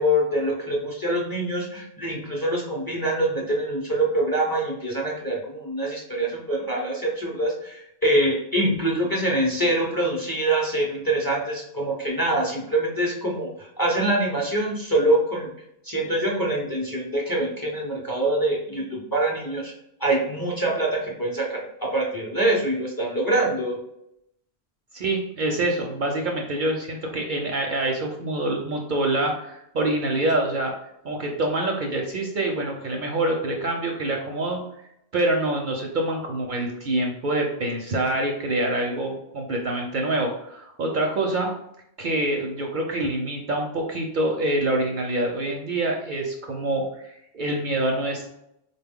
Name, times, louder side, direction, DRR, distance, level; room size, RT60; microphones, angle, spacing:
voice 1, 0.0-15.5 15.8-19.7 20.0-23.8, right 1 dB, 25° left, -4 dB, 0.6 m, -24 dB
voice 2, 24.9-30.7 31.0-34.6 35.1-41.5 42.0-48.3, right 1 dB, 60° right, 1 dB, 0.6 m, -26 dB
4.1 x 2.2 x 3.5 m, 0.78 s
omnidirectional pair, 1.1 m